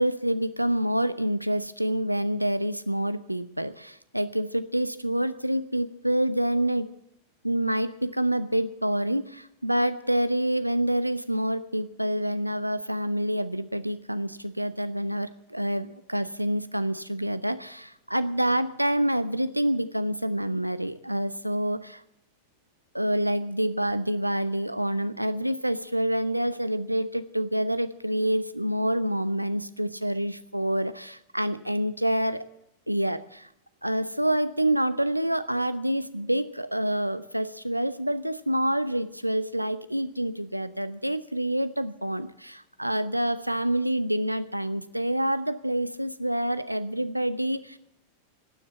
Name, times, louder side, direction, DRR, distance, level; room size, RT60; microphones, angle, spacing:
voice 1, 0.0-6.9 7.4-22.0 22.9-32.4 32.9-33.5 33.8-47.8, right 1 dB, 90° right, 14 dB, 0.8 m, -27 dB
15.5 x 10.0 x 7.9 m, 0.81 s
figure-of-eight pair, 90°, 0 cm